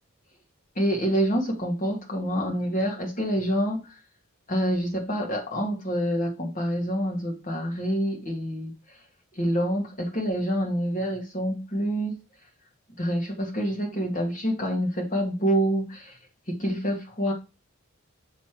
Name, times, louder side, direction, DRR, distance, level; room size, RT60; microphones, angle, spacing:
voice 1, 0.8-4.0 4.5-8.7 9.4-12.2 13.0-16.2 16.5-17.3, equal, 35° left, 1.9 m, -27 dB
6.9 x 3.3 x 6.0 m
head